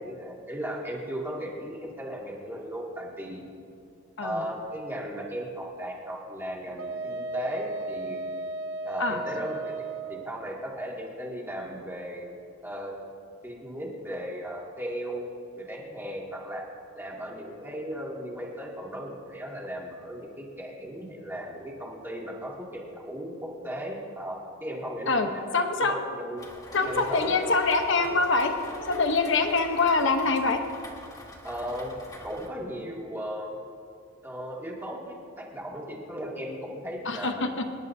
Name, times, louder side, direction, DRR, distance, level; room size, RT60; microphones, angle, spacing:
voice 1, 0.0-3.4 4.2-8.2 8.8-12.3 12.6-13.0 13.4-15.2 15.6-16.6 16.9-26.4 26.8-27.4 31.4-31.9 32.2-33.6 34.2-37.6, equal, 10° right, -3 dB, 2.1 m, -36 dB
Wind instrument woodwind instrument, 6.8-10.3, right 2 dB, 70° right, 0.6 m, -35 dB
voice 2, 25.5-26.0 26.7-28.5 28.9-30.6 37.1-37.5, left 3 dB, 65° left, 5 dB, 1.0 m, -24 dB
Rain, 26.4-32.5, left 1 dB, 20° left, 1.5 m, -46 dB
sound 1, 26.7-30.3 31.6-31.7, left 4 dB, 85° left, 0.6 m, -41 dB
25.5 x 11.0 x 2.7 m, 2.5 s
head